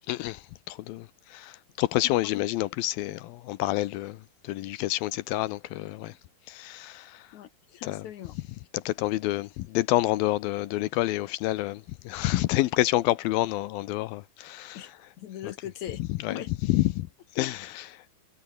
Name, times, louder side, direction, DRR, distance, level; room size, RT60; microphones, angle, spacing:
voice 1, 0.1-0.4 0.7-1.1 1.3-4.2 4.5-6.1 6.5-7.2 7.8-8.1 8.7-14.9 15.4-15.5 16.2-16.4 16.7-17.1 17.4-17.9, left 16 dB, 80° left, 2.4 m, -28 dB
voice 2, 2.0-2.4 7.3-8.3 14.7-14.9 15.2-16.0 16.3-16.5 17.4-17.7, left 11 dB, 65° left, 2.1 m, -40 dB
omnidirectional pair, 4.5 m